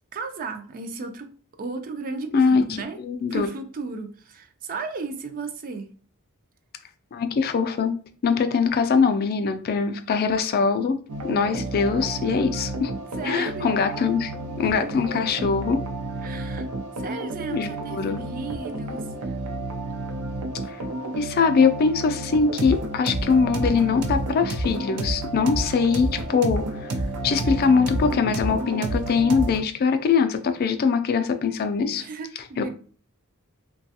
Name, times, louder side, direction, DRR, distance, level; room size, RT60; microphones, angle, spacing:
voice 1, 0.1-1.3 1.6-3.0 3.3-5.9 13.2-13.8 16.2-16.7 17.0-19.4 31.9-32.7, right 4 dB, 40° right, 7 dB, 0.4 m, -34 dB
voice 2, 3.0-3.5 7.1-7.9 8.2-11.0 11.2-12.9 13.2-14.3 14.6-15.8 17.5-18.2 20.7-20.8 21.1-26.9 27.2-32.0 32.6-32.7, left 5 dB, 45° left, 8 dB, 0.3 m, -22 dB
sound 1, 11.1-29.6, right 1 dB, 90° right, 0.5 m, -30 dB
3.2 x 2.3 x 2.7 m, 0.42 s
head